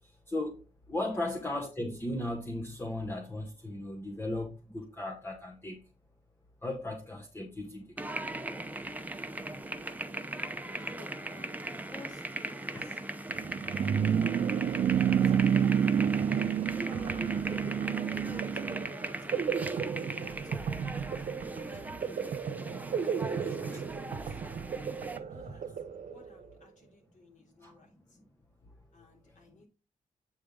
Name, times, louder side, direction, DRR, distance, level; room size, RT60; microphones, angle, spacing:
voice 1, 0.3-0.6 0.9-5.8 6.6-7.9 8.2-8.3 12.7-12.8 21.6-21.8 27.6-27.7, left 1 dB, 15° left, 2 dB, 1.0 m, -36 dB
sound 1, 8.0-25.2, right 1 dB, 10° right, 0.7 m, -39 dB
voice 2, 10.4-13.0 13.6-15.5 16.9-19.7 20.1-21.4 22.5-24.4 25.2-25.8 26.1-28.2 28.9-29.7, left 2 dB, 65° left, 1 dB, 3.4 m, -55 dB
sound 2, 13.3-18.9, right 8 dB, 50° right, 0.4 m, -28 dB
sound 3, 16.0-26.6, right 7 dB, 80° right, 0.9 m, -37 dB
8.8 x 5.1 x 3.7 m, 0.31 s
cardioid pair, 105°, 14 cm